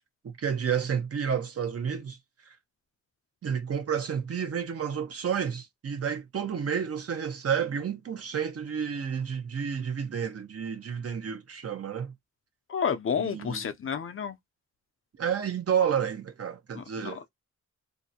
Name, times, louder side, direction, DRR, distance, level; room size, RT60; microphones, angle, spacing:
voice 1, 0.2-2.2 2.5-2.6 3.4-12.1 13.2-13.7 15.2-17.2, right 7 dB, 55° right, 0.7 m, -30 dB
voice 2, 12.7-14.4 16.7-17.3, left 7 dB, 45° left, 0.5 m, -31 dB
2.6 x 2.1 x 2.7 m
cardioid pair, 60°, 29 cm